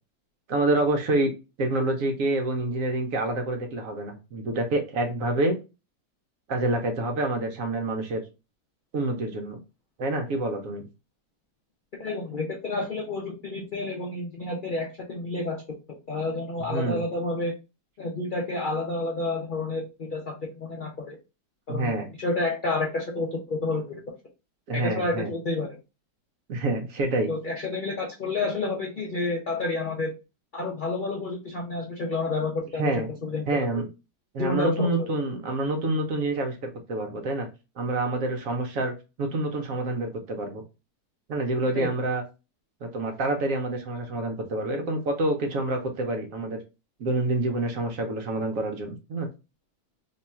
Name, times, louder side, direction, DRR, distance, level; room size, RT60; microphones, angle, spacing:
voice 1, 0.5-1.3 1.6-5.5 6.5-8.2 8.9-9.6 10.0-10.8 16.7-17.0 21.7-22.1 24.7-25.3 26.5-27.3 32.8-33.1 33.5-33.9 34.3-37.5 37.8-38.9 39.2-40.6 41.3-42.2 42.8-46.6 47.0-49.3, right 2 dB, 60° right, 4 dB, 1.0 m, -27 dB
voice 2, 12.0-15.6 15.9-17.5 18.0-21.2 21.7-24.0 24.7-25.8 27.3-30.1 30.5-33.7 34.4-35.2 41.7-41.9, left 2 dB, 70° left, 0 dB, 0.4 m, -30 dB
3.0 x 2.3 x 4.1 m, 0.28 s
omnidirectional pair, 1.8 m